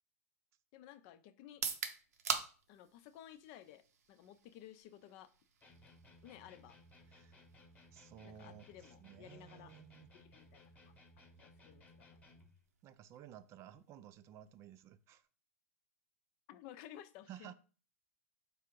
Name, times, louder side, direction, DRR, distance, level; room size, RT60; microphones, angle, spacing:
voice 1, 0.7-1.6 2.7-5.3 6.2-6.8 8.2-9.7 10.2-11.0 11.4-12.1 16.5-17.5, left 11 dB, 50° left, 0.5 m, -55 dB
Fizzy Drink Can Opening B, 1.5-15.3, right 6 dB, 80° right, 0.7 m, -48 dB
sound 1, 5.6-12.6, left 1 dB, 15° left, 0.9 m, -61 dB
voice 2, 7.9-8.7 9.0-10.1 11.7-11.8 12.8-15.3 17.3-17.5, right 10 dB, 35° right, 0.3 m, -55 dB
4.7 x 2.5 x 4.5 m
hypercardioid pair, 115°, 8 cm